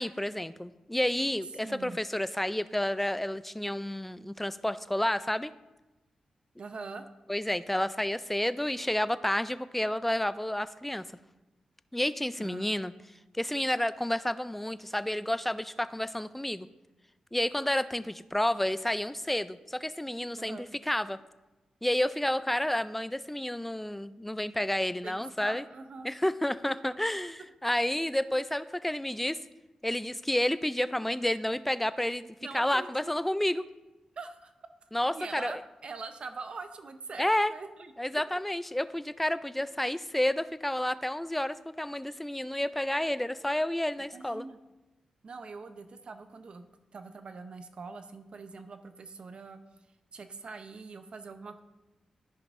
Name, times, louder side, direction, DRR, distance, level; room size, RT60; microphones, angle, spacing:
voice 1, 0.0-5.5 7.3-11.0 11.9-12.9 13.3-16.7 17.3-21.2 21.8-25.6 26.0-29.4 29.8-32.2 32.5-33.6 34.9-35.6 37.2-37.5 38.0-44.5, left 1 dB, 10° left, 14 dB, 0.3 m, -30 dB
voice 2, 1.6-2.0 6.6-7.0 12.4-12.7 20.4-20.7 25.0-26.1 32.4-33.2 34.2-34.5 35.1-38.4 44.1-44.6 45.2-46.6 46.9-49.6 50.1-51.6, right 4 dB, 55° right, 8 dB, 0.7 m, -43 dB
14.0 x 5.2 x 2.5 m, 1.0 s
cardioid pair, 80°, 2 cm